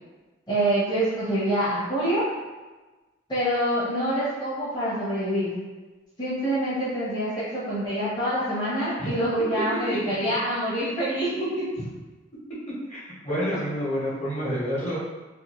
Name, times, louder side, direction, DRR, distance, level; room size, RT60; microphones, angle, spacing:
voice 1, 0.5-2.2 3.3-5.5 6.2-11.7, right 1 dB, 20° left, -12 dB, 0.8 m, -26 dB
voice 2, 12.9-15.0, equal, 40° left, -9 dB, 1.1 m, -28 dB
2.6 x 2.5 x 3.0 m, 1.2 s
head